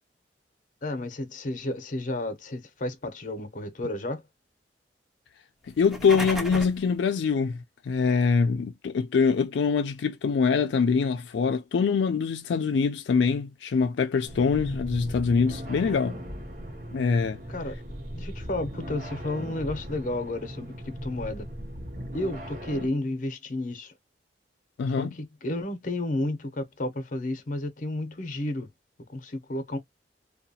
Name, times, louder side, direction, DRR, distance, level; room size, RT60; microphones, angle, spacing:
voice 1, 0.8-4.2 17.5-17.8 18.1-21.5 22.1-23.9 24.9-28.7 29.1-29.8, left 1 dB, 50° left, 0.7 m, -32 dB
sound 1, 5.7-6.9, equal, ahead, 0.5 m, -34 dB
voice 2, 5.8-16.2 16.9-17.4 24.8-25.1, left 5 dB, 90° left, 0.4 m, -24 dB
sound 2, 14.2-22.9, equal, 50° right, 0.8 m, -38 dB
2.7 x 2.3 x 2.7 m
head